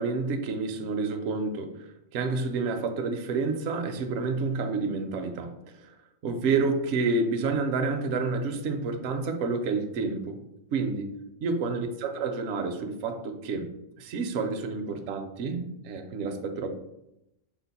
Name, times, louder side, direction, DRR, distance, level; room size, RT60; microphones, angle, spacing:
voice 1, 0.0-1.7 2.1-5.5 5.8-5.9 6.2-10.4 10.7-13.7 14.0-16.7, right 4 dB, 65° right, 5 dB, 0.8 m, -29 dB
5.0 x 2.4 x 4.0 m, 0.86 s
omnidirectional pair, 1.4 m